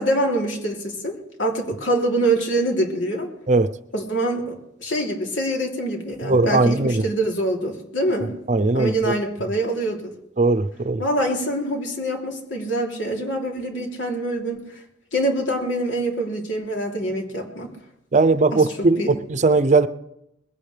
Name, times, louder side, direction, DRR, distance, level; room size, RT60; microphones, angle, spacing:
voice 1, 0.0-3.3 3.9-8.3 8.7-10.1 11.0-14.6 15.1-17.7 18.5-18.6 19.0-19.1, right 1 dB, 80° left, 0 dB, 3.3 m, -25 dB
voice 2, 6.2-7.0 8.5-9.1 10.4-11.0 18.1-19.9, right 3 dB, 40° right, 13 dB, 0.6 m, -19 dB
21.0 x 16.5 x 3.4 m, 0.80 s
head